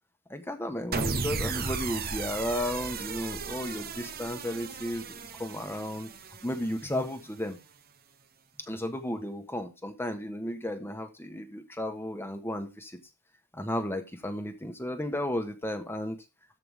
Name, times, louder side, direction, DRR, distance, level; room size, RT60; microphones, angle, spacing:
voice 1, 0.3-6.1 6.4-7.6 8.6-12.9 13.5-16.2, left 1 dB, 10° left, 1.3 m, -34 dB
sound 1, 0.9-7.3, right 4 dB, 45° right, 1.0 m, -35 dB
14.0 x 5.6 x 3.6 m
head